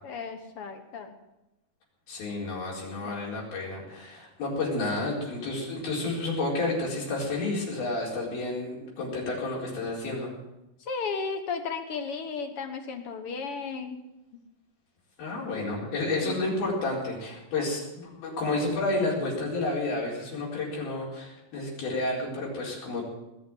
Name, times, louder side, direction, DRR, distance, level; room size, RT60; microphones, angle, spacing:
voice 1, 0.0-1.2 3.0-3.3 10.8-14.0 15.5-15.7 16.2-16.5, left 5 dB, 55° left, 7 dB, 1.7 m, -35 dB
voice 2, 2.1-10.3 15.2-23.0, left 2 dB, 85° left, -4 dB, 6.3 m, -30 dB
20.0 x 7.1 x 9.1 m, 0.93 s
omnidirectional pair, 4.1 m